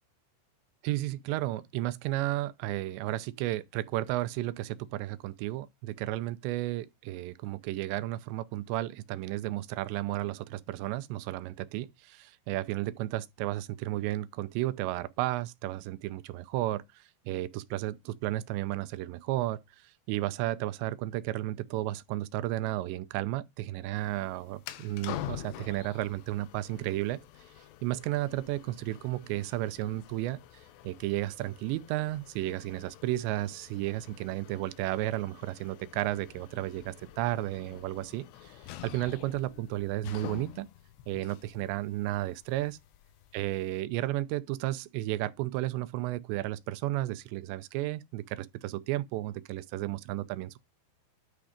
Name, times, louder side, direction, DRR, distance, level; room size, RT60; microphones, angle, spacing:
voice 1, 0.8-27.2 27.8-30.4 30.8-40.7 41.1-42.8 43.3-50.6, right 16 dB, 85° right, 2.7 m, -33 dB
sound 1, 24.0-43.8, left 13 dB, 80° left, 2.8 m, -47 dB
10.0 x 3.6 x 4.9 m
omnidirectional pair, 5.2 m